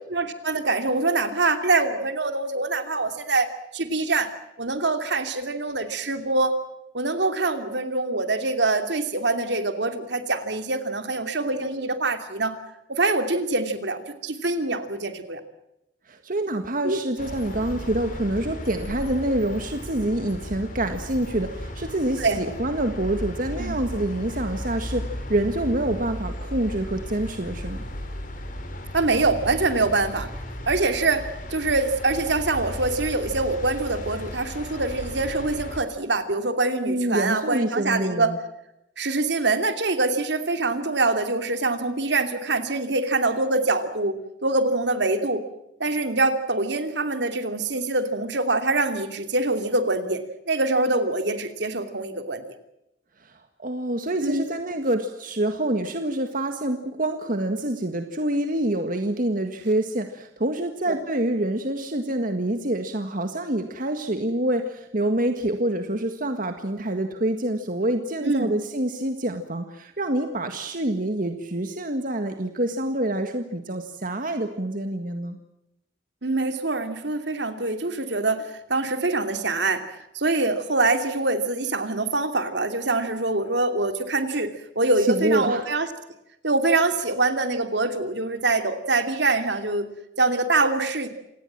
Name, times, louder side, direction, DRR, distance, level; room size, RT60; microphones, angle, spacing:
voice 1, 0.1-4.3 4.6-6.6 6.9-12.6 12.9-15.4 16.8-17.0 22.2-22.4 23.6-23.8 28.9-30.3 30.7-38.3 39.0-44.1 44.4-45.4 45.8-52.4 54.2-54.5 68.2-68.5 76.2-79.9 80.1-85.9 86.4-89.9 90.2-91.1, right 3 dB, 70° right, 8 dB, 2.8 m, -24 dB
voice 2, 16.1-27.8 36.9-38.4 53.2-75.4 85.0-85.7, right 1 dB, 50° right, 6 dB, 1.8 m, -26 dB
sound 1, 17.2-35.8, left 1 dB, 45° left, 4.5 m, -35 dB
28.0 x 19.0 x 7.6 m, 0.85 s
head